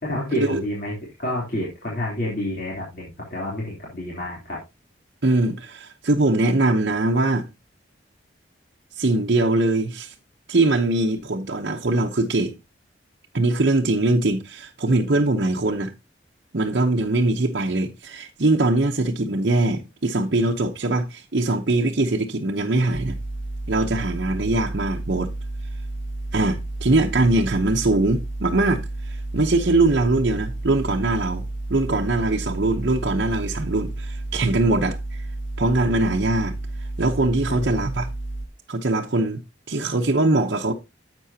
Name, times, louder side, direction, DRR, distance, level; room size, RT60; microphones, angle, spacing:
voice 1, 0.0-4.6 37.5-37.8, left 1 dB, 50° left, 3.2 m, -29 dB
voice 2, 5.2-7.5 9.0-10.1 10.5-12.6 13.3-15.9 16.5-23.2 23.7-25.3 26.3-35.3 35.6-38.1 38.7-39.4 39.7-40.7, right 2 dB, 60° right, 0.8 m, -22 dB
sound 1, 22.9-38.5, right 2 dB, 85° left, 1.9 m, -31 dB
10.5 x 7.7 x 2.8 m
head